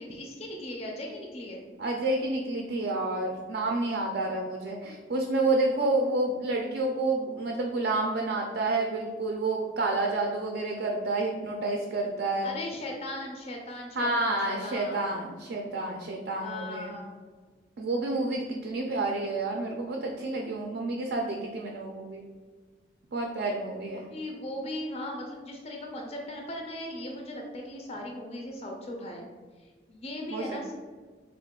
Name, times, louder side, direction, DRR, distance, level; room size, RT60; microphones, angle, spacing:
voice 1, 0.0-1.6 12.4-15.2 16.4-17.2 23.9-29.3 29.6-30.7, left 1 dB, 35° left, 1 dB, 0.4 m, -38 dB
voice 2, 1.8-12.5 14.0-17.0 17.8-22.2 23.1-24.1 30.3-30.4, right 2 dB, 65° right, 0 dB, 0.4 m, -29 dB
3.6 x 2.4 x 3.6 m, 1.5 s
head